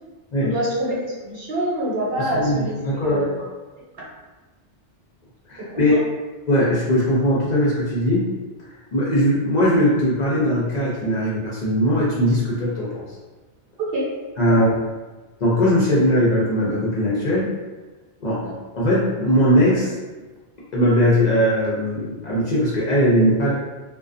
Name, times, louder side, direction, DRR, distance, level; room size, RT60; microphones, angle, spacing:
voice 1, 0.4-3.4 5.7-5.8 13.8-14.1 14.5-14.7, right 1 dB, 60° right, -6 dB, 0.9 m, -26 dB
voice 2, 2.2-3.5 5.5-6.0 6.5-8.3 8.9-13.0 14.4-14.8 15.4-17.5 18.2-20.0 20.7-23.5, equal, 50° left, -7 dB, 0.5 m, -20 dB
2.4 x 2.2 x 2.5 m, 1.2 s
omnidirectional pair, 1.2 m